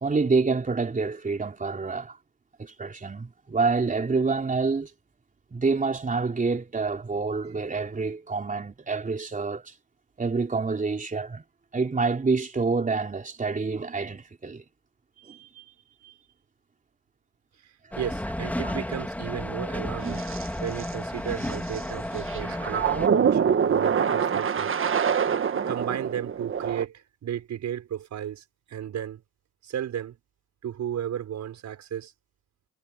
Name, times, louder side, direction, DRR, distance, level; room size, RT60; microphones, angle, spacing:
voice 1, 0.0-2.2 2.6-4.9 5.5-9.7 10.2-11.4 11.7-14.6 15.2-15.6 16.0-16.1 18.6-18.7 20.0-20.2, right 4 dB, 25° right, 3.5 m, -27 dB
voice 2, 17.6-20.3 20.6-24.7 25.7-29.2 29.6-30.2 30.6-32.1, right 10 dB, 65° right, 5.7 m, -34 dB
sound 1, 17.9-23.1, left 1 dB, 5° left, 2.6 m, -32 dB
sound 2, 20.1-20.5 20.8-20.9 21.4-21.8 22.2-26.9, right 7 dB, 45° right, 1.5 m, -25 dB
cardioid pair, 90°, 30 cm